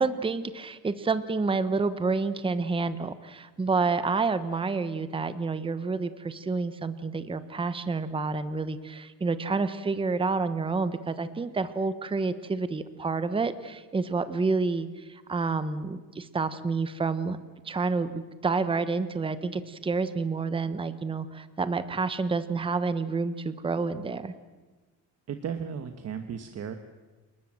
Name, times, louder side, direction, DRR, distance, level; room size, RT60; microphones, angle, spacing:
voice 1, 0.0-17.4 17.6-24.3, right 4 dB, 15° right, 12 dB, 1.1 m, -29 dB
voice 2, 25.3-26.7, right 7 dB, 45° right, 7 dB, 1.4 m, -35 dB
28.5 x 20.0 x 7.7 m, 1.3 s
cardioid pair, 155°, 37 cm